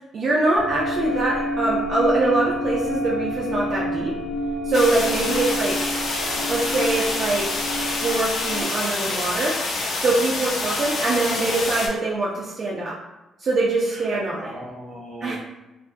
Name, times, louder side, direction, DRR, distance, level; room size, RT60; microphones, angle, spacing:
voice 1, 0.1-4.1 4.6-5.7 6.5-9.5 10.0-12.9 13.4-14.6 15.2-15.4, right 2 dB, 55° right, -5 dB, 0.5 m, -23 dB
sound 1, 0.6-8.6, equal, 40° left, 0.8 m, -28 dB
sound 2, 4.7-11.9, left 2 dB, 55° left, 0.5 m, -27 dB
voice 2, 13.9-15.4, right 1 dB, 25° right, -4 dB, 0.9 m, -39 dB
2.4 x 2.3 x 2.5 m, 1.0 s
cardioid pair, 90°, 0 cm